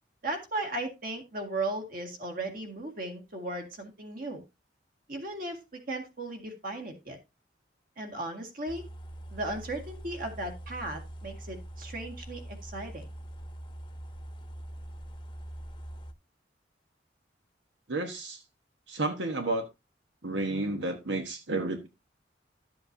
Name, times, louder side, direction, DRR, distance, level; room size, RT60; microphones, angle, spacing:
voice 1, 0.2-4.4 5.1-7.2 8.0-8.8 9.3-13.1, right 2 dB, 50° right, 4 dB, 2.0 m, -36 dB
sound 1, 8.7-16.1, right 1 dB, 25° left, 0.9 m, -43 dB
voice 2, 17.9-18.4 18.9-19.7 20.2-21.9, right 2 dB, 80° right, 5 dB, 1.2 m, -31 dB
12.5 x 7.6 x 2.7 m, 0.25 s
head